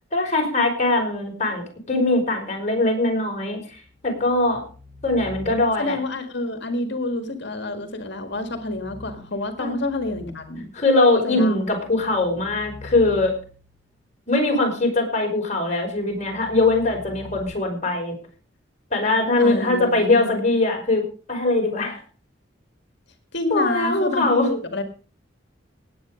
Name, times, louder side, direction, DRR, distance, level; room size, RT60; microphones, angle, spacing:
voice 1, 0.1-3.6 4.0-4.6 5.0-6.0 9.6-9.7 10.7-13.3 14.3-18.1 18.9-22.0 23.5-24.5, left 2 dB, 40° left, 2 dB, 5.5 m, -21 dB
sound 1, 3.8-6.1 8.2-10.8 11.4-13.9 15.9-17.4, left 1 dB, 15° right, 6.8 m, -44 dB
voice 2, 5.8-10.7 11.2-11.6 19.4-20.4 23.3-24.8, left 2 dB, 65° left, 6 dB, 1.8 m, -28 dB
18.5 x 8.7 x 5.1 m, 0.40 s
head